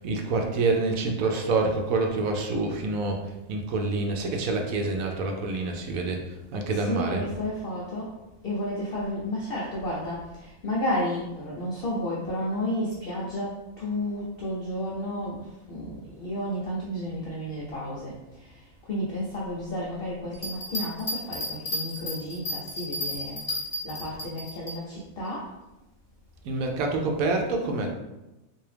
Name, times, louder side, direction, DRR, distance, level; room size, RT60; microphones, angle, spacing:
voice 1, 0.0-7.2 26.4-27.9, right 3 dB, 80° right, 2 dB, 1.0 m, -27 dB
voice 2, 6.7-8.1 8.4-23.4 23.8-25.5, left 1 dB, 55° left, -5 dB, 0.7 m, -32 dB
sound 1, 20.3-24.8, left 1 dB, 30° left, 1.2 m, -32 dB
3.5 x 2.7 x 3.3 m, 0.99 s
omnidirectional pair, 1.5 m